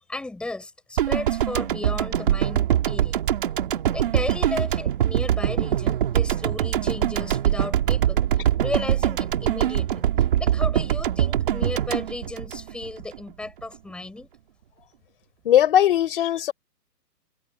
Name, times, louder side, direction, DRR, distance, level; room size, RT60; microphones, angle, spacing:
voice 1, 0.1-3.2 3.9-8.2 8.6-10.0 10.4-14.3, left 2 dB, ahead, 6.3 m, -34 dB
sound 1, 1.0-13.2 13.4-13.6, right 11 dB, 30° right, 2.6 m, -23 dB
voice 2, 15.4-16.5, left 11 dB, 35° left, 4.4 m, -19 dB
hypercardioid pair, 170°, 50 cm